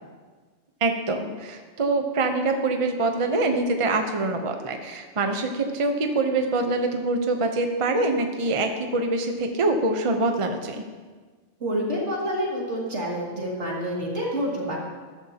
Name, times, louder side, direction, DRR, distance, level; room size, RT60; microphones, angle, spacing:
voice 1, 0.8-10.8, right 2 dB, 30° right, 5 dB, 0.7 m, -25 dB
voice 2, 11.6-14.8, equal, 70° right, -3 dB, 2.7 m, -28 dB
13.5 x 12.5 x 2.9 m, 1.4 s
omnidirectional pair, 1.2 m